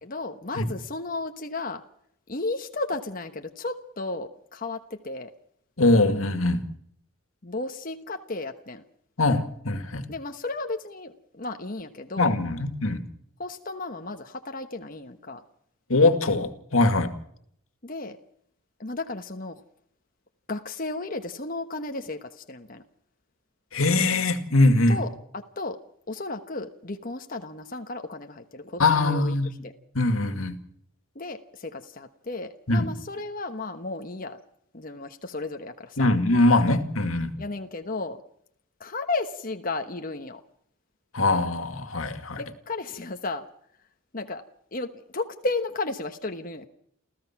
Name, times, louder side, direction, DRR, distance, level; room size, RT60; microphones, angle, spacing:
voice 1, 0.0-1.8 2.3-5.3 7.4-8.8 10.1-12.3 13.4-15.4 17.8-18.2 18.8-19.6 20.5-22.8 24.9-25.8 26.1-29.7 31.1-34.4 34.7-36.1 37.4-38.2 38.8-40.4 42.3-43.5 44.1-44.4 44.7-46.7, left 3 dB, 40° left, 1.2 m, -34 dB
voice 2, 5.8-6.6 9.2-10.1 12.2-13.1 15.9-17.1 23.7-25.0 28.8-29.5 30.0-30.6 32.7-32.9 36.0-37.4 41.1-42.4, left 2 dB, 90° left, 2.2 m, -22 dB
29.0 x 15.0 x 6.0 m
head